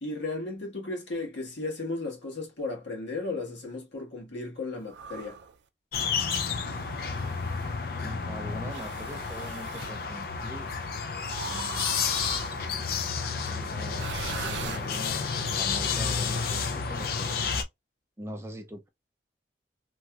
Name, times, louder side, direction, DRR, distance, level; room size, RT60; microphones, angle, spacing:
voice 1, 0.0-5.4, left 3 dB, 85° left, 1.4 m, -35 dB
sound 1, 4.9-5.5 6.5-7.7 8.7-10.0 11.3-12.8 13.9-15.3, right 6 dB, 80° right, 0.4 m, -40 dB
sound 2, 5.9-17.6, left 5 dB, 55° left, 0.4 m, -31 dB
voice 2, 8.0-10.7 11.5-12.0 13.5-14.1 14.4-17.5 18.2-18.9, equal, 15° right, 0.4 m, -42 dB
3.0 x 2.9 x 2.3 m
head